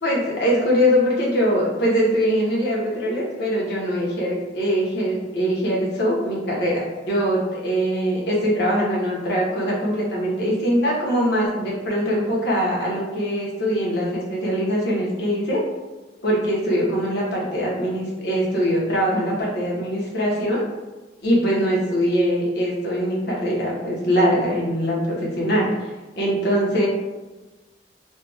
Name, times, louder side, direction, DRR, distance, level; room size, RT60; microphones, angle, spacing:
voice 1, 0.0-15.6 16.2-20.7 21.2-25.9 26.2-26.9, equal, 65° left, -4 dB, 1.1 m, -22 dB
3.2 x 2.4 x 3.3 m, 1.2 s
head